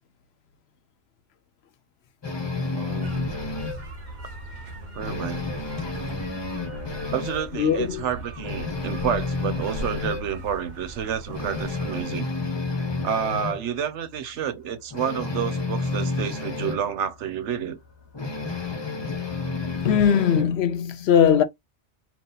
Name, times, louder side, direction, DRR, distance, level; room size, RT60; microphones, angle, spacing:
sound 1, 2.2-3.9 4.3-4.4 4.8-7.5 7.9-8.0 8.4-10.3 10.7-10.8 11.3-13.6 14.9-16.8 18.1-20.5, left 3 dB, 25° left, 0.7 m, -30 dB
voice 1, 2.7-3.3 4.9-5.5 7.1-12.3 13.0-17.8, right 8 dB, 80° right, 1.0 m, -29 dB
sound 2, 3.0-12.0, right 1 dB, 45° right, 1.0 m, -39 dB
voice 2, 7.5-8.1 19.8-21.4, left 8 dB, 70° left, 0.8 m, -20 dB
4.0 x 2.4 x 3.9 m
omnidirectional pair, 1.2 m